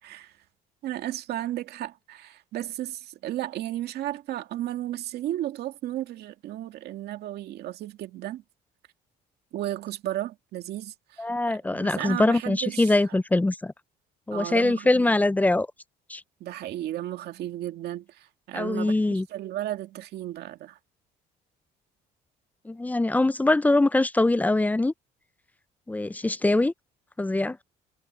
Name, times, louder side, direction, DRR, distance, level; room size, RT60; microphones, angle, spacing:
voice 1, 0.0-0.3 0.8-8.4 9.5-13.0 14.3-15.1 16.4-20.8, right 13 dB, 70° right, 2.2 m, -34 dB
voice 2, 11.2-13.7 14.3-15.7 16.1-16.2 18.5-19.3 22.7-24.9 25.9-26.7 27.2-27.6, left 2 dB, 10° left, 0.4 m, -23 dB
cardioid pair, 110°, 17 cm